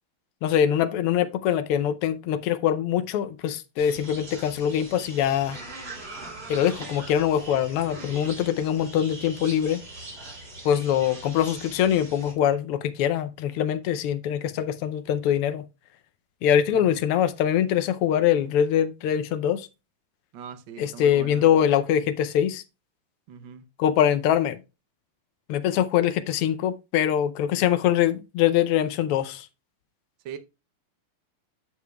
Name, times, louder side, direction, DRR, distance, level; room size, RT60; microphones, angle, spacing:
voice 1, 0.4-5.6 6.5-9.8 10.6-15.6 16.4-19.7 20.8-22.6 23.8-24.6 25.5-29.5, left 10 dB, 85° left, 1.6 m, -23 dB
sound 1, 3.8-12.3, right 2 dB, 45° right, 3.4 m, -41 dB
voice 2, 16.7-17.0 20.3-21.5 23.3-23.6 30.2-30.4, right 7 dB, 70° right, 1.4 m, -40 dB
13.0 x 5.0 x 2.2 m
omnidirectional pair, 2.4 m